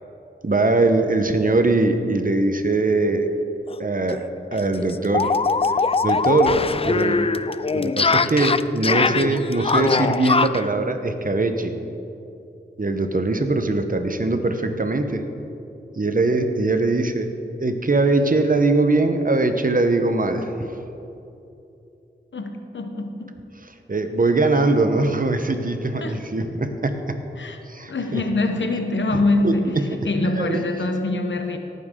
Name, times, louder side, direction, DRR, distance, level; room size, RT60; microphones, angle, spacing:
voice 1, 0.4-3.3 3.8-5.3 6.0-6.6 6.8-7.3 7.7-11.8 12.8-15.3 16.0-17.3 17.6-20.5 23.9-27.2 27.7-28.2 29.1-30.0 30.4-30.6, right 2 dB, 45° right, 7 dB, 1.0 m, -21 dB
sound 1, 3.7-3.8 4.1-4.2 4.5-10.7, left 4 dB, 30° left, 0.4 m, -22 dB
voice 2, 22.3-23.3 26.0-26.2 27.4-27.6 27.9-31.6, left 2 dB, 80° left, 6 dB, 1.0 m, -24 dB
17.5 x 9.4 x 3.8 m, 2.8 s
cardioid pair, 45°, 19 cm